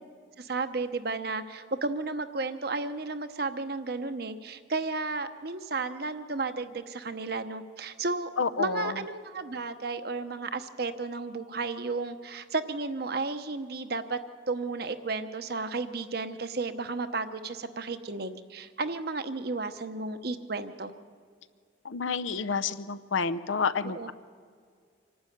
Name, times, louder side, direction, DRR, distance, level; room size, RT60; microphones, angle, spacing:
voice 1, 0.4-8.3 8.6-14.2 14.5-20.9 23.8-24.1, right 3 dB, 55° right, 9 dB, 0.9 m, -33 dB
voice 2, 8.4-8.9 21.8-24.1, left 5 dB, 85° left, 14 dB, 0.7 m, -29 dB
25.5 x 12.0 x 9.3 m, 2.1 s
head